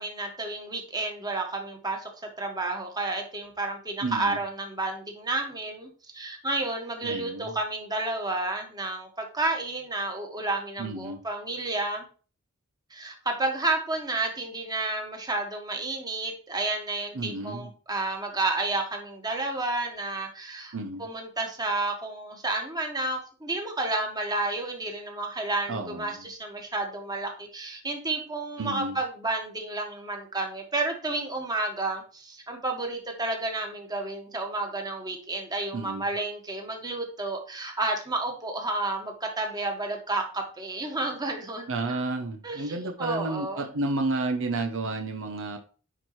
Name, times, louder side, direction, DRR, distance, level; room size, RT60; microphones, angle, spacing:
voice 1, 0.0-2.1 2.4-12.1 12.9-20.7 21.0-41.7 42.4-43.7, right 2 dB, 20° right, 2 dB, 1.6 m, -31 dB
voice 2, 4.0-4.4 7.0-7.6 10.8-11.2 17.1-17.7 20.7-21.1 25.7-26.3 28.6-29.0 35.7-36.0 41.7-45.6, right 2 dB, 65° right, 5 dB, 0.8 m, -31 dB
10.0 x 4.5 x 3.1 m, 0.38 s
head